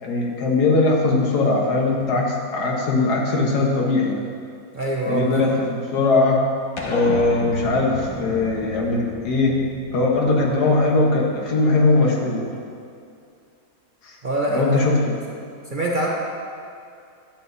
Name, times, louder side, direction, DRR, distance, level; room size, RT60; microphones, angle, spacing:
voice 1, 0.0-4.2 5.1-6.4 6.8-9.6 9.9-12.5 14.0-14.1 14.5-15.0, left 3 dB, 85° left, -1 dB, 1.7 m, -20 dB
voice 2, 4.7-5.5 14.2-15.2 15.7-16.1, right 1 dB, 45° right, -3 dB, 0.7 m, -25 dB
sound 1, 6.8-11.5, left 1 dB, 45° left, 0.3 m, -34 dB
11.0 x 7.9 x 2.7 m, 2.4 s
omnidirectional pair, 1.7 m